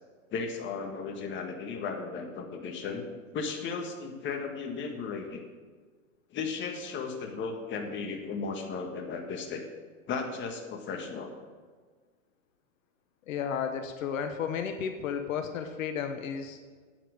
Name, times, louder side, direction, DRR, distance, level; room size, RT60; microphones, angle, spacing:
voice 1, 0.3-3.1 3.3-5.4 6.3-9.6 10.1-11.3, left 5 dB, 25° left, 4 dB, 1.6 m, -35 dB
voice 2, 13.3-16.6, left 7 dB, 65° left, 7 dB, 1.1 m, -33 dB
9.1 x 8.7 x 6.3 m, 1.5 s
hypercardioid pair, 120°, 42 cm